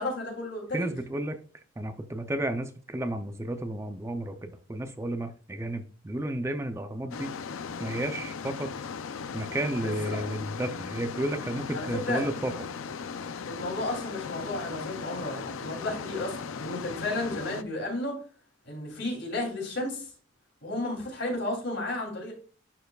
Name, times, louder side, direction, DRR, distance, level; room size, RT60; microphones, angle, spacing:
voice 1, 0.0-0.9 9.8-10.2 11.7-12.2 13.5-18.2 18.6-20.1 20.6-22.3, left 2 dB, 65° left, 2.9 m, -33 dB
voice 2, 0.7-1.4 1.8-7.3 7.8-8.7 9.3-12.5, right 1 dB, 15° right, 0.4 m, -32 dB
sound 1, 7.1-17.6, left 6 dB, 85° left, 0.5 m, -38 dB
11.5 x 4.5 x 2.3 m
head